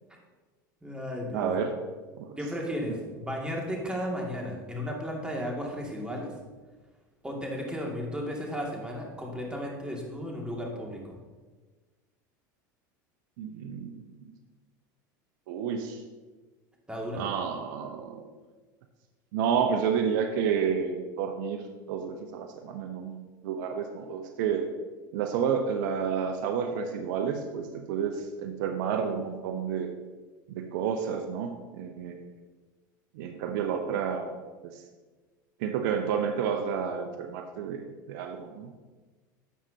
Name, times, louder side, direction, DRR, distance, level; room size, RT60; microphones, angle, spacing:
voice 1, 0.8-1.5 2.4-6.3 7.2-11.1 16.9-17.2, equal, 10° right, -1 dB, 2.3 m, -34 dB
voice 2, 1.3-1.8 2.2-2.4 13.4-14.0 15.5-16.0 17.1-18.2 19.3-21.6 21.9-23.2 23.4-24.7 25.1-30.0 30.5-32.2 33.1-34.3 34.6-34.8 35.6-38.7, right 7 dB, 70° right, 6 dB, 0.8 m, -30 dB
12.0 x 7.4 x 2.8 m, 1.3 s
hypercardioid pair, 90°, 11 cm